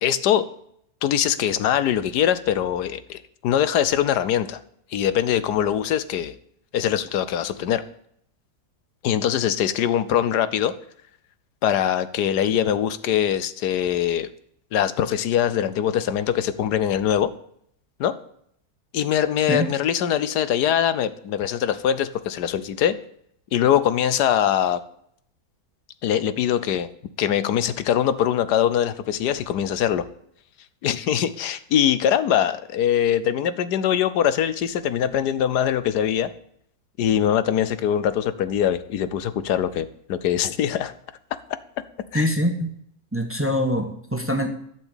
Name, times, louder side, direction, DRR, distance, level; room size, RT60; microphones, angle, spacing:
voice 1, 0.0-0.5 1.0-4.6 4.9-6.3 6.7-7.8 9.0-10.7 11.6-14.3 14.7-17.3 18.0-18.2 18.9-23.0 23.5-24.8 26.0-26.9 27.2-30.1 30.8-36.3 37.0-40.9 42.1-42.3, left 10 dB, 85° left, 14 dB, 1.4 m, -22 dB
voice 2, 42.1-42.7 43.1-44.5, equal, 10° right, 5 dB, 1.2 m, -23 dB
11.5 x 6.1 x 8.9 m, 0.67 s
omnidirectional pair, 1.7 m